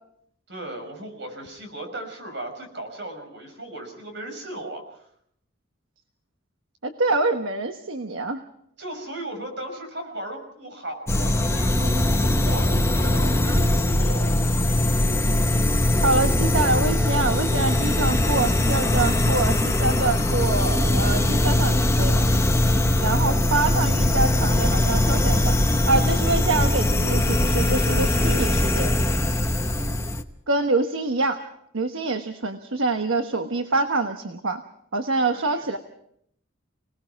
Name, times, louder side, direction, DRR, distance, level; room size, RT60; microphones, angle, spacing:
voice 1, 0.5-5.1 8.8-14.3 29.6-29.7 35.3-35.8, right 1 dB, 55° right, 5 dB, 5.8 m, -37 dB
voice 2, 6.8-8.4 16.0-22.2 23.0-25.5 25.9-28.9 30.5-31.4 31.7-34.6 34.9-35.8, right 3 dB, 75° right, 6 dB, 1.2 m, -25 dB
sound 1, 11.1-30.2, left 1 dB, 15° left, 0.9 m, -21 dB
30.0 x 19.0 x 4.7 m, 0.70 s
head